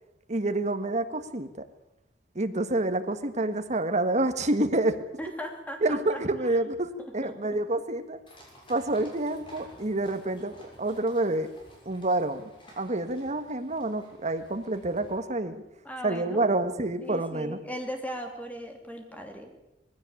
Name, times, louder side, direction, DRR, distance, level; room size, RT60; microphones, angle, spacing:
voice 1, 0.3-1.5 2.3-5.0 5.8-8.2 8.7-11.5 11.8-12.5 12.8-15.6 16.0-17.6, right 2 dB, 40° right, 8 dB, 1.5 m, -28 dB
voice 2, 5.2-6.2 7.0-7.6 15.8-16.4 17.0-19.5, equal, 10° left, 4 dB, 3.0 m, -38 dB
sound 1, 8.3-15.2, equal, 30° left, 6.8 m, -53 dB
19.5 x 16.0 x 8.5 m, 0.94 s
head